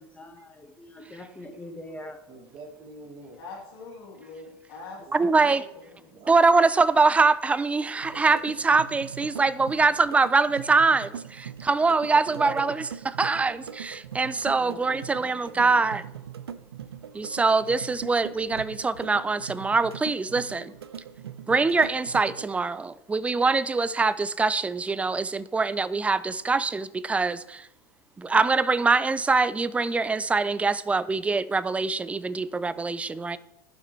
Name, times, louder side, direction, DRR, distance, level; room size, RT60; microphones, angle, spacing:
voice 1, 0.0-2.2 14.6-15.8, left 1 dB, 10° left, 1.3 m, -44 dB
voice 2, 2.3-3.4 5.0-5.2 6.1-6.3 12.0-12.8, right 2 dB, 35° right, 1.6 m, -43 dB
voice 3, 3.4-6.1, left 3 dB, 70° left, 2.6 m, -44 dB
voice 4, 5.1-5.6 6.3-16.0 17.1-20.7 21.5-27.7 28.2-33.4, right 4 dB, 10° right, 0.4 m, -23 dB
sound 1, 8.0-22.5, right 8 dB, 85° right, 0.5 m, -41 dB
14.5 x 5.7 x 3.1 m
hypercardioid pair, 85°, 13 cm